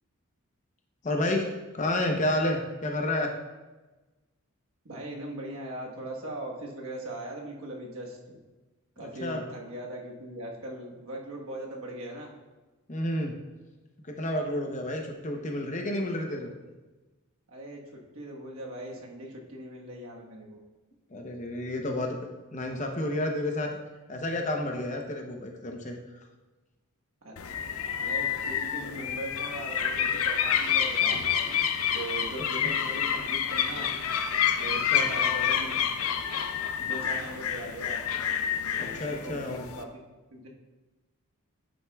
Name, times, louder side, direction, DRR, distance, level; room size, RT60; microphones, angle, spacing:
voice 1, 1.0-3.3 9.0-9.4 12.9-13.3 14.0-16.6 21.1-23.7 24.1-26.0 32.6-32.7 34.9-35.1 38.8-39.7, left 1 dB, 35° left, 2 dB, 0.8 m, -30 dB
voice 2, 4.8-8.4 9.0-12.3 17.5-17.8 18.1-20.6 27.2-27.3 28.0-31.6 31.9-33.9 34.6-35.8 36.7-38.0 38.7-40.0 40.3-40.5, right 1 dB, 65° right, -1 dB, 1.3 m, -40 dB
sound 1, 27.4-39.8, left 8 dB, 70° left, 0.5 m, -28 dB
9.2 x 7.6 x 2.3 m, 1.2 s
head